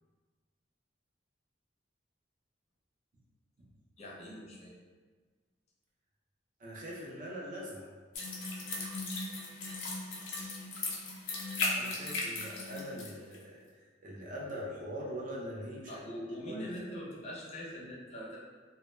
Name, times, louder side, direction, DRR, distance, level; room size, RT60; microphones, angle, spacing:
voice 1, 4.0-4.7 15.9-18.4, equal, 35° left, -4 dB, 0.5 m, -42 dB
voice 2, 6.6-7.9 11.8-13.6 14.0-16.0 16.5-16.6, equal, 45° right, -4 dB, 0.5 m, -42 dB
sound 1, 8.2-13.1 13.3-13.4, left 3 dB, 80° left, 0.6 m, -37 dB
2.1 x 2.0 x 3.0 m, 1.4 s
head